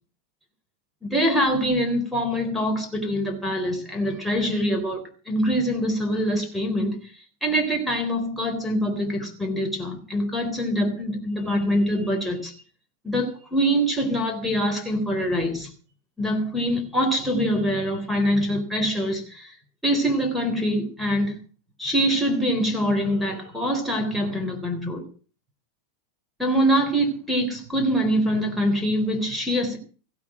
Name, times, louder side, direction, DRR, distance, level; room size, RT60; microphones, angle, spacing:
voice 1, 1.0-7.0 7.4-12.5 13.0-15.7 16.2-19.5 19.8-21.4 21.8-25.0 26.4-29.8, equal, ahead, 3.9 m, -24 dB
16.0 x 8.6 x 7.7 m
figure-of-eight pair, 90°, 0 cm